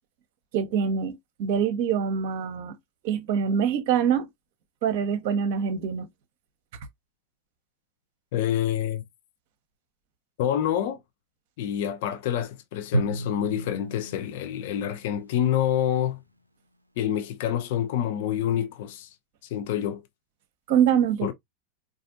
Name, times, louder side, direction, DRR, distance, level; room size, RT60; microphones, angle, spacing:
voice 1, 0.5-2.8 3.0-4.3 4.8-6.1 20.7-21.3, right 8 dB, 50° right, 0.7 m, -24 dB
voice 2, 8.3-9.0 10.4-11.0 11.6-16.2 17.0-19.1 19.5-20.0 21.2-21.3, left 10 dB, 50° left, 0.5 m, -27 dB
Drum, 12.9-15.9, right 1 dB, 85° right, 0.3 m, -33 dB
4.2 x 2.5 x 2.5 m
figure-of-eight pair, 90°, 0 cm